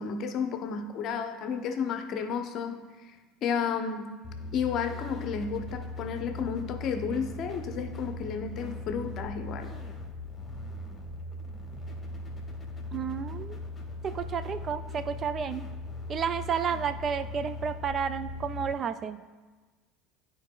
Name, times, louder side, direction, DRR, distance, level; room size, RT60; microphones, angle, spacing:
voice 1, 0.0-3.2 3.4-4.2 4.5-9.7, left 6 dB, 45° left, 7 dB, 0.7 m, -32 dB
sound 1, 4.2-18.7, left 2 dB, 20° left, 1.5 m, -39 dB
voice 2, 12.9-13.7 14.0-15.6 16.1-19.2, right 7 dB, 35° right, 11 dB, 0.3 m, -31 dB
12.5 x 4.6 x 2.3 m, 1.3 s
figure-of-eight pair, 65°, 0 cm